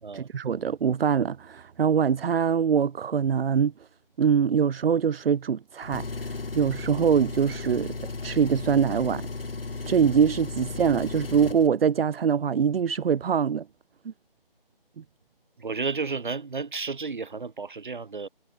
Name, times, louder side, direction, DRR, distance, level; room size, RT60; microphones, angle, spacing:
voice 1, 0.1-3.7 4.2-7.9 8.2-9.3 9.9-13.6, right 7 dB, 80° right, 0.5 m, -23 dB
Engine, 5.8-11.7, left 3 dB, 70° left, 2.6 m, -35 dB
voice 2, 15.6-18.3, right 4 dB, 55° right, 1.5 m, -32 dB
figure-of-eight pair, 165°, 29 cm